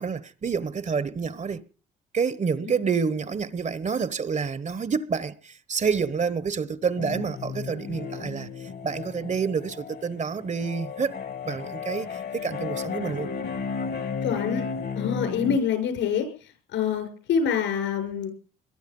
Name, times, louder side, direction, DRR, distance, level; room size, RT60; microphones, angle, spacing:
voice 1, 0.0-1.6 2.1-11.2 11.4-13.3, right 5 dB, 35° right, 1.2 m, -28 dB
sound 1, 7.0-15.6, left 5 dB, 55° left, 2.0 m, -34 dB
voice 2, 14.2-14.6 14.9-16.3 16.7-18.3, left 7 dB, 75° left, 6.6 m, -26 dB
22.0 x 12.0 x 5.5 m
hypercardioid pair, 60°, 20 cm